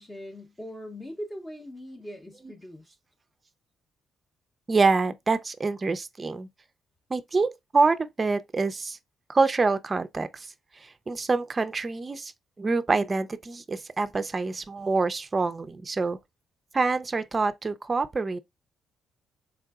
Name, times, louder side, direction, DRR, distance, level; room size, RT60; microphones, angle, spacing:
voice 1, 0.0-3.0, equal, 15° left, 0.6 m, -41 dB
voice 2, 4.7-6.5 7.1-9.0 9.3-10.5 10.8-12.3 12.6-16.2 16.7-18.4, right 3 dB, 30° right, 0.4 m, -26 dB
3.6 x 3.3 x 2.3 m
cardioid pair, 90°, 0 cm